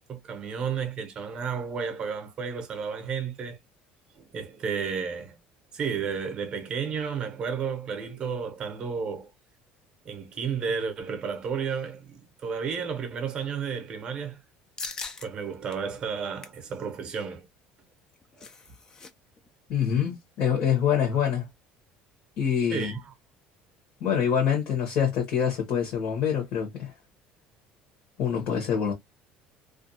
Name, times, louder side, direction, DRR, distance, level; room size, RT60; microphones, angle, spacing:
voice 1, 0.1-3.6 4.2-5.4 5.7-9.3 10.0-14.4 15.2-17.5 18.4-18.5 22.7-23.1, right 6 dB, 30° right, 0.7 m, -32 dB
sound 1, 14.8-15.3 15.7-15.8 16.2-16.6 17.9-19.1 19.4-19.5 19.8-20.1, left 4 dB, 20° left, 0.3 m, -40 dB
voice 2, 19.7-21.5 22.4-22.9 24.0-26.9 28.2-28.9, left 8 dB, 50° left, 0.9 m, -25 dB
2.4 x 2.2 x 2.6 m
cardioid pair, 175°, 3 cm